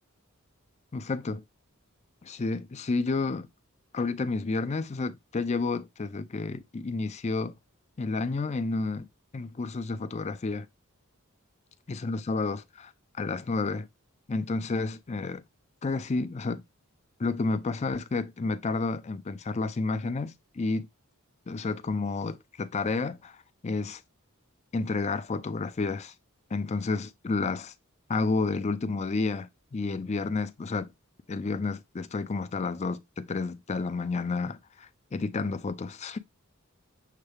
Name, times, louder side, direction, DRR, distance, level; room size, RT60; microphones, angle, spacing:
voice 1, 0.9-1.4 2.2-3.5 3.9-7.5 8.0-9.1 9.3-10.7 11.9-13.9 14.3-15.4 15.8-16.6 17.2-20.9 21.5-23.4 23.6-24.0 24.7-26.1 26.5-27.7 28.1-30.9 31.3-36.2, left 3 dB, 30° left, 0.4 m, -30 dB
6.5 x 2.3 x 3.2 m
head